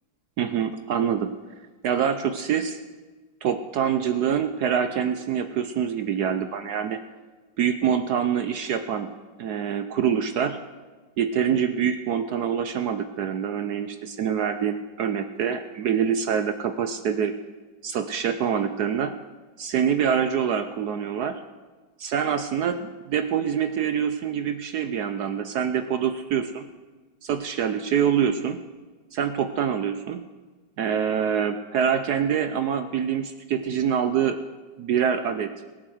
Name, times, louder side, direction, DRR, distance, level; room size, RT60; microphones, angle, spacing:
voice 1, 0.4-1.4 1.8-2.8 3.4-7.0 7.6-10.6 11.2-17.3 17.8-19.2 19.6-21.4 22.0-26.6 27.2-28.6 29.1-30.3 30.8-34.4 34.8-35.5, right 8 dB, 70° right, 10 dB, 0.9 m, -25 dB
17.0 x 9.1 x 7.8 m, 1.3 s
omnidirectional pair, 2.3 m